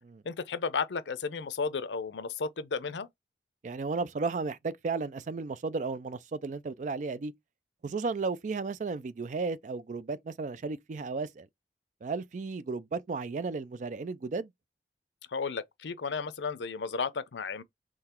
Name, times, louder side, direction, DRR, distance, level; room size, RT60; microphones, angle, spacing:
voice 1, 0.2-3.1 15.3-17.6, left 5 dB, 85° left, 0.6 m, -33 dB
voice 2, 3.6-7.3 7.8-11.5 12.0-14.5, right 4 dB, 45° right, 0.3 m, -34 dB
3.9 x 3.1 x 4.3 m
head